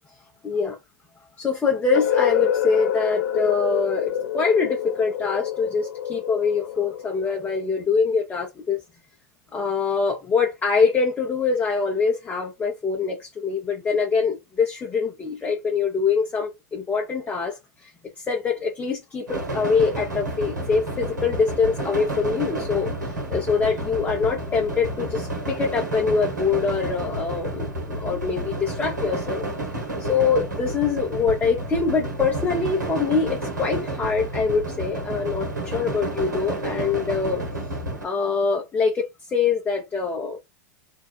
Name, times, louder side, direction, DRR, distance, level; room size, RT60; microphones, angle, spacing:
voice 1, 0.4-0.8 1.4-8.8 9.5-17.9 18.2-29.4 30.0-37.4 38.0-40.4, left 5 dB, 20° left, 0.9 m, -24 dB
sound 1, 1.9-7.8, left 10 dB, 75° left, 0.6 m, -27 dB
sound 2, 19.3-38.0, right 1 dB, 85° right, 1.1 m, -30 dB
2.7 x 2.3 x 4.0 m
hypercardioid pair, 95°, 9 cm